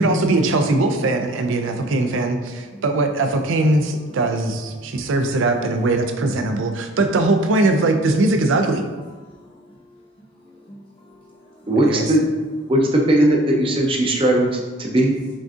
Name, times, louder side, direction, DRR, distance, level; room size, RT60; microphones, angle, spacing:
voice 1, 0.0-8.9 11.8-12.1, right 2 dB, 85° right, 0.4 m, -20 dB
voice 2, 1.6-2.8 4.1-4.4 4.7-5.4 6.2-7.0 9.2-11.7 14.1-14.2, equal, 30° left, 0.9 m, -47 dB
voice 3, 11.7-12.3 12.7-15.1, right 1 dB, 30° right, 0.5 m, -18 dB
6.0 x 2.5 x 2.4 m
head